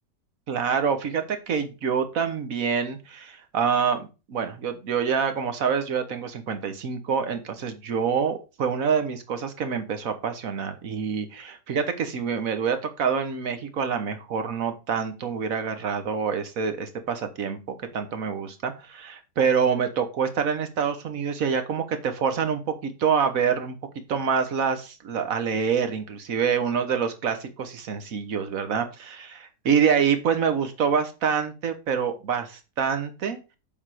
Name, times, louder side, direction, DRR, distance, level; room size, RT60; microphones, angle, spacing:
voice 1, 0.5-23.8 24.1-33.5, right 6 dB, 55° right, 8 dB, 1.5 m, -26 dB
7.3 x 5.6 x 4.9 m, 0.30 s
omnidirectional pair, 1.8 m